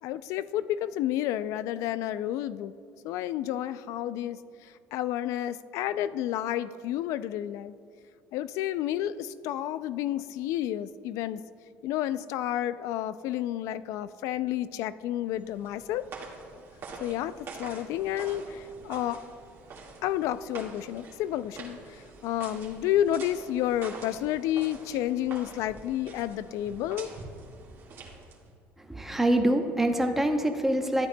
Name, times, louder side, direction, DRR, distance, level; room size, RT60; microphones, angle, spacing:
voice 1, 0.0-2.7 3.0-7.7 8.3-11.4 11.8-16.0 17.0-19.2 20.0-27.1, left 12 dB, 70° left, 15 dB, 0.3 m, -30 dB
sound 1, 15.3-28.6, right 3 dB, 45° right, 1.9 m, -46 dB
voice 2, 28.8-31.1, right 1 dB, 5° right, 4 dB, 0.8 m, -25 dB
13.0 x 8.7 x 2.3 m, 2.4 s
cardioid pair, 110°, 5 cm